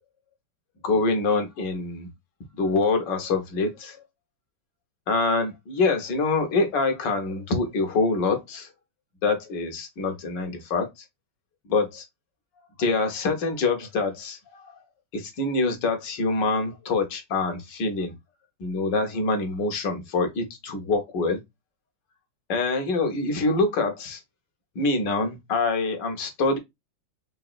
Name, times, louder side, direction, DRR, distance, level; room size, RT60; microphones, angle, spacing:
voice 1, 0.8-2.1 2.5-4.0 5.1-8.7 9.2-10.9 11.7-12.0 12.8-14.7 15.1-18.1 18.6-21.4 22.5-24.2 24.7-26.6, left 3 dB, 70° left, 1.6 m, -25 dB
4.1 x 3.5 x 2.3 m
omnidirectional pair, 2.1 m